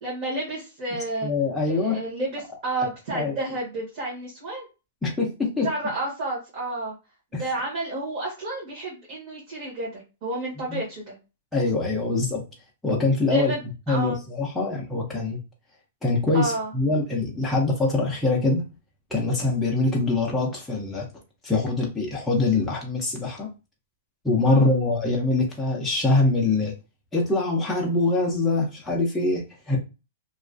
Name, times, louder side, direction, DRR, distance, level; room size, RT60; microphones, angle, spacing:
voice 1, 0.0-1.3 1.6-4.7 5.6-6.9 7.3-11.1 13.3-13.6 13.9-14.2 16.3-16.7 24.4-24.7, right 2 dB, 35° right, -5 dB, 0.8 m, -30 dB
voice 2, 1.2-2.0 3.1-3.3 5.0-5.7 7.3-7.4 10.7-10.8 11.5-12.4 12.8-13.5 13.9-15.4 16.0-18.6 19.1-21.1 21.4-23.5 24.2-26.7 27.1-29.8, left 3 dB, 5° left, -4 dB, 0.3 m, -24 dB
2.3 x 2.2 x 2.4 m, 0.29 s
hypercardioid pair, 180°, 0 cm